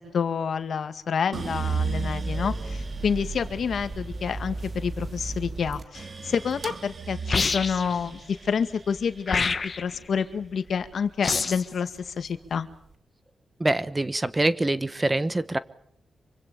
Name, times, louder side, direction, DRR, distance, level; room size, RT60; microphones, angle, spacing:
voice 1, 0.1-12.7, left 6 dB, 65° left, 10 dB, 2.0 m, -28 dB
sound 1, 1.3-11.5 12.0-12.8, right 4 dB, 40° right, 2.5 m, -34 dB
sound 2, 7.3-8.0 9.3-10.0 11.2-11.7, left 4 dB, 40° left, 1.4 m, -26 dB
voice 2, 13.6-15.6, right 2 dB, 15° right, 15 dB, 1.2 m, -25 dB
26.5 x 25.0 x 7.0 m, 0.66 s
wide cardioid pair, 115°, 0 cm